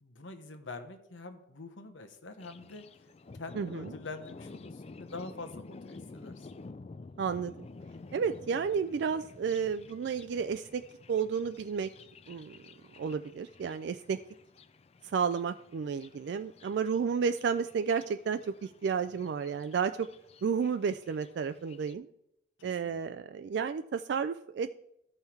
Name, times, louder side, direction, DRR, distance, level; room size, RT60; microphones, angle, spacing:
voice 1, 0.0-2.9 3.4-6.5 22.6-23.0, left 3 dB, 85° left, 8 dB, 1.1 m, -45 dB
Thunder, 2.4-21.9, left 3 dB, 35° left, 0.4 m, -51 dB
voice 2, 3.6-3.9 7.2-7.7 8.1-10.8 11.1-11.9 12.3-12.6 13.0-14.2 15.0-20.1 20.4-22.1 22.6-24.7, right 6 dB, 60° right, 10 dB, 0.3 m, -32 dB
13.0 x 5.6 x 4.5 m, 0.80 s
head